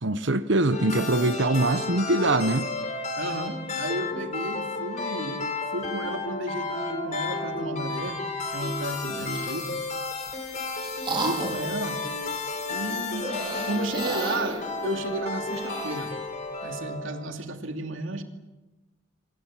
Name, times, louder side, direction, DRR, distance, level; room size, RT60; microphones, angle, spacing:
voice 1, 0.0-2.7, right 2 dB, 60° right, 1.2 m, -23 dB
sound 1, 0.7-17.3, left 3 dB, 35° left, 4.2 m, -32 dB
voice 2, 3.2-5.4 5.7-8.2 8.5-9.8 11.1-12.0 12.7-13.3 13.7-16.1 16.6-18.2, right 2 dB, 75° right, 2.6 m, -33 dB
sound 2, 9.0-9.6 10.3-11.7 13.1-16.1, right 2 dB, 25° right, 4.3 m, -34 dB
27.0 x 25.5 x 7.6 m
head